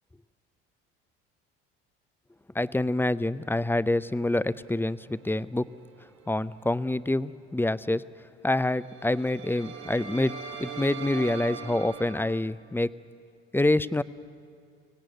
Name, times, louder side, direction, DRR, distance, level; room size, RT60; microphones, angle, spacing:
voice 1, 2.5-5.7 6.3-8.1 8.4-12.9 13.5-14.0, left 2 dB, 5° left, 16 dB, 0.6 m, -26 dB
sound 1, 4.1-5.9 6.2-6.5 8.7-12.4, right 6 dB, 75° right, 2.6 m, -42 dB
24.0 x 18.0 x 9.3 m, 2.2 s
hypercardioid pair, 65°, 34 cm